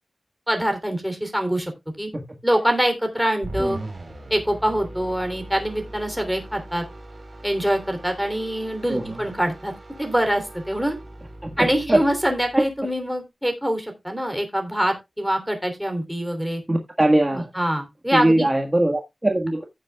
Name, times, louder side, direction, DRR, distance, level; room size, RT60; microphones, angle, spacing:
voice 1, 0.5-1.7 2.0-2.1 2.4-3.8 4.3-6.8 7.4-9.7 10.0-10.9 11.6-16.6 17.3-18.5, equal, ahead, 5 dB, 3.0 m, -24 dB
sound 1, 3.4-12.8, right 1 dB, 40° right, 3.7 m, -40 dB
voice 2, 3.6-3.9 8.9-9.1 11.4-12.0 16.7-17.5 18.1-19.6, right 1 dB, 20° right, 2 dB, 1.6 m, -21 dB
15.5 x 7.4 x 2.3 m, 0.22 s
wide cardioid pair, 100°, 0 cm